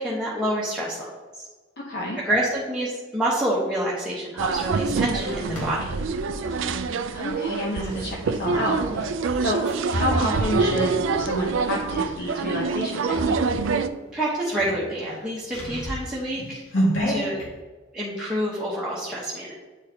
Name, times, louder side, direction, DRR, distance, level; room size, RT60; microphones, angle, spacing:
voice 1, 0.0-1.4 2.1-6.0 14.1-16.6 17.0-17.4 17.9-19.5, right 1 dB, 5° right, -8 dB, 1.1 m, -27 dB
voice 2, 1.8-2.2 7.1-9.6 9.9-13.4, left 1 dB, 55° left, -3 dB, 0.9 m, -29 dB
sound 1, 4.4-13.9, right 4 dB, 75° right, 0.4 m, -26 dB
sound 2, 4.8-6.8 7.8-12.0 12.5-12.7 13.1-13.8 14.1-14.2 14.5-17.5, equal, 85° left, 2.0 m, -30 dB
9.0 x 4.8 x 2.9 m, 1.3 s
head